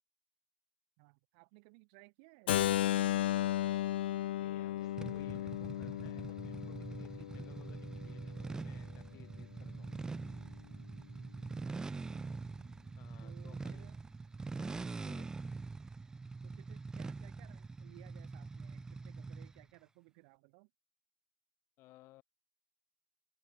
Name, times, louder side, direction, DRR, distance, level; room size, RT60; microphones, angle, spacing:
voice 1, 1.0-3.8 11.7-12.4 13.2-14.0 16.4-20.7, right 35 dB, 60° right, 7.1 m, -61 dB
Keyboard (musical), 2.5-8.3, left 13 dB, 90° left, 0.6 m, -35 dB
voice 2, 4.3-9.9 13.0-13.9 14.6-15.3 21.8-22.2, left 18 dB, 45° left, 5.1 m, -60 dB
sound 1, 5.0-19.7, right 4 dB, 10° right, 1.5 m, -44 dB
open air
supercardioid pair, 125°, 5 cm